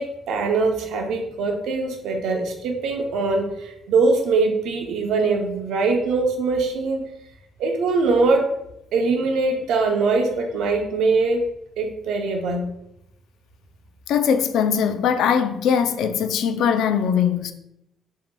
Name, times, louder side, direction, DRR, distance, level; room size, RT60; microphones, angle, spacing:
voice 1, 0.0-7.0 7.6-8.5 8.9-11.5 11.8-12.6, right 3 dB, 75° right, 0.6 m, -22 dB
voice 2, 14.1-17.5, left 7 dB, 70° left, 0.4 m, -21 dB
6.9 x 2.8 x 2.2 m
cardioid pair, 165°, 0 cm